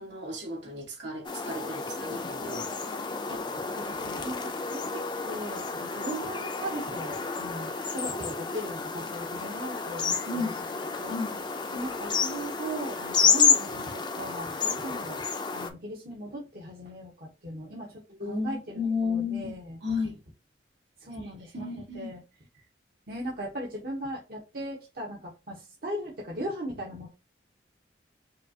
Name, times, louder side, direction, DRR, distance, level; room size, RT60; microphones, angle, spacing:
voice 1, 0.0-2.7 10.3-10.6 11.1-11.4 18.2-20.2 21.1-22.1, left 4 dB, 85° right, 2.2 m, -33 dB
sound 1, 1.2-15.7, left 5 dB, 25° left, 0.5 m, -30 dB
voice 2, 3.7-10.5 11.0-11.2 11.7-15.2 15.5-18.0 18.3-19.8 21.0-22.2 23.1-27.1, right 1 dB, 55° right, 1.0 m, -38 dB
5.1 x 2.4 x 2.8 m
head